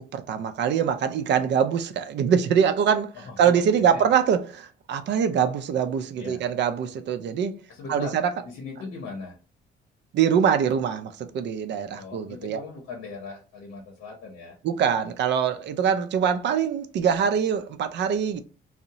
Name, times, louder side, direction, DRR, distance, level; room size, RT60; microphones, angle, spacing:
voice 1, 0.1-3.1 3.4-7.6 7.9-8.3 10.1-12.6 14.6-18.4, right 7 dB, 60° right, 0.4 m, -23 dB
voice 2, 3.1-4.1 6.2-6.4 7.7-8.2 8.4-9.4 11.9-14.6, left 4 dB, 75° left, 0.7 m, -39 dB
2.6 x 2.0 x 2.8 m
cardioid pair, 90°, 20 cm